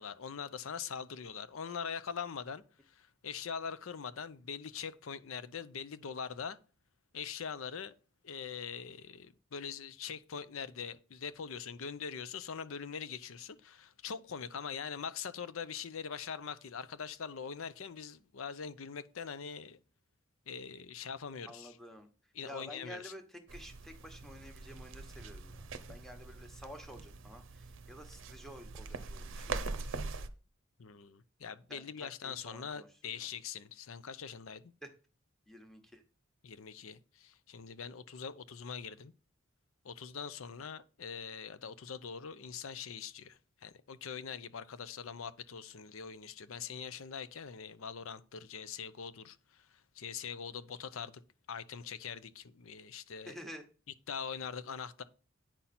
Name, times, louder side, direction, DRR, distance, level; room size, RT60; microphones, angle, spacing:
voice 1, 0.0-6.6 7.1-8.0 8.2-19.8 20.5-21.8 22.3-23.1 30.8-34.7 36.4-39.1 39.8-51.2 51.5-53.3 54.1-55.0, left 6 dB, 75° left, 0.6 m, -43 dB
voice 2, 21.5-22.1 22.4-23.2 23.5-27.4 27.9-30.3 31.7-32.9 35.5-36.0 53.2-53.6, equal, ahead, 1.0 m, -51 dB
sound 1, 23.5-30.3, right 3 dB, 65° right, 0.7 m, -43 dB
8.9 x 5.7 x 4.2 m
head